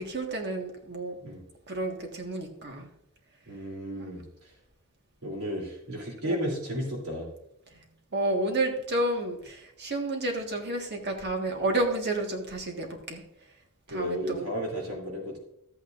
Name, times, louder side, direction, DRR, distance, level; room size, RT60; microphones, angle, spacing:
voice 1, 0.0-1.2 1.7-2.9 6.2-6.4 8.1-13.2 13.9-14.5, right 2 dB, 50° right, 3 dB, 1.6 m, -30 dB
voice 2, 3.5-4.5 5.2-7.3 13.9-15.4, equal, 85° right, -1 dB, 3.1 m, -33 dB
13.5 x 8.6 x 2.5 m, 0.76 s
head